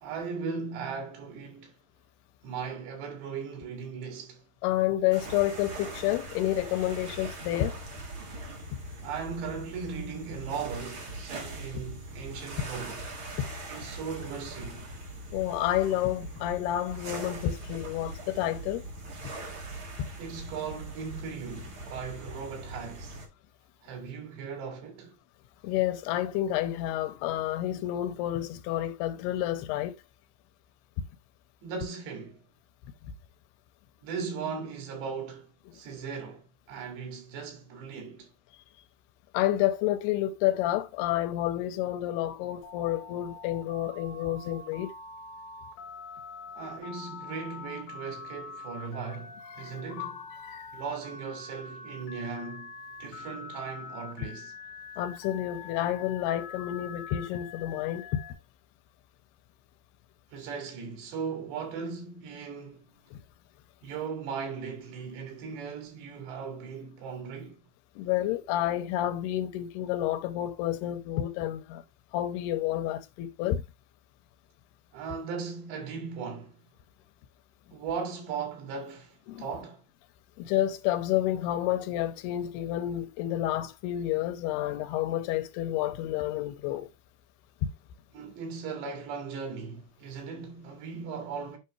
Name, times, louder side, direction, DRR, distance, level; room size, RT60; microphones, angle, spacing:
voice 1, 0.0-1.7 2.4-4.4 9.0-13.0 13.7-15.0 20.2-23.2 23.8-25.2 31.6-32.4 34.0-38.3 46.5-50.3 50.7-54.6 60.3-62.9 63.8-67.7 74.9-76.6 77.7-79.9 88.1-91.6, right 5 dB, 90° right, 4.5 m, -38 dB
voice 2, 4.6-7.7 13.4-13.5 15.3-18.8 25.6-29.9 39.3-44.9 49.5-49.7 50.0-50.1 50.5-50.7 55.0-58.2 63.1-63.2 68.0-71.8 72.1-73.6 79.3-79.4 80.4-86.9, left 13 dB, 85° left, 2.6 m, -29 dB
sound 1, 5.1-23.3, right 2 dB, 40° right, 2.2 m, -41 dB
Telephone, 42.6-58.3, left 4 dB, 45° left, 2.2 m, -44 dB
8.9 x 5.6 x 3.1 m
omnidirectional pair, 4.8 m